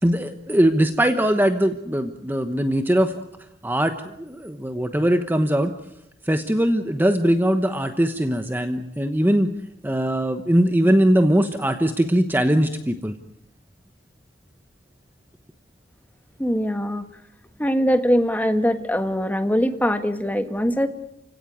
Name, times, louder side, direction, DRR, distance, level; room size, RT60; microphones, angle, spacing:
voice 1, 0.0-3.1 3.6-5.7 6.3-9.5 9.8-13.1, right 1 dB, 10° right, 7 dB, 1.1 m, -21 dB
voice 2, 16.4-17.0 17.6-20.9, equal, 10° left, 8 dB, 1.6 m, -22 dB
29.5 x 17.0 x 9.3 m, 0.85 s
head